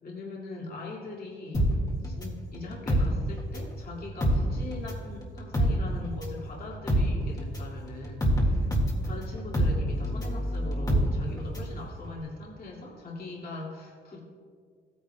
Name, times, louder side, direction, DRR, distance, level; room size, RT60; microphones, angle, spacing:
voice 1, 0.0-1.8 2.0-8.8 9.0-14.2, left 3 dB, 45° left, -3 dB, 2.2 m, -41 dB
sound 1, 1.5-3.8 4.1-11.8 12.1-12.2, equal, 20° left, 1.9 m, -26 dB
15.5 x 9.4 x 2.3 m, 2.1 s
cardioid pair, 90°, 20 cm